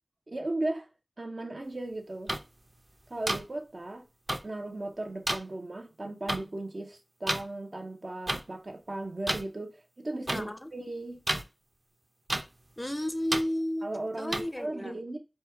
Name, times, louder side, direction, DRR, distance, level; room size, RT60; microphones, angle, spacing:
voice 1, 0.3-0.9 1.2-2.4 3.1-4.0 4.4-11.2 13.8-15.2, right 2 dB, 65° right, 0.9 m, -36 dB
sound 1, 2.3-2.4 3.3-3.4 4.3-4.4 5.3-5.4 6.3-6.4 7.3-7.4 8.3-8.4 9.3-9.4 10.3-10.4 11.3-11.4 12.3-12.4 13.3-13.4 14.3-14.4, right 1 dB, 40° right, 0.7 m, -29 dB
voice 2, 10.3-10.7 12.8-13.9 14.1-14.9, left 1 dB, 25° left, 0.5 m, -32 dB
4.3 x 2.4 x 4.6 m
wide cardioid pair, 40°, 0 cm